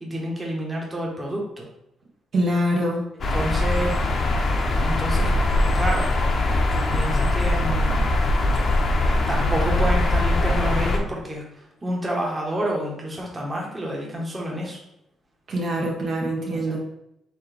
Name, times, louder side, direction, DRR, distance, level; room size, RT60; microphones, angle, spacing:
voice 1, 0.0-1.7 3.3-3.9 4.7-5.3 5.7-6.1 6.7-8.0 9.1-11.4 11.8-14.8 16.5-16.8, equal, 20° right, -2 dB, 1.2 m, -29 dB
voice 2, 2.3-3.0 15.5-16.8, equal, 60° right, -3 dB, 1.2 m, -24 dB
sound 1, 3.2-11.0, left 2 dB, 50° left, 0.8 m, -21 dB
4.4 x 3.5 x 3.4 m, 0.80 s
cardioid pair, 90°, 0 cm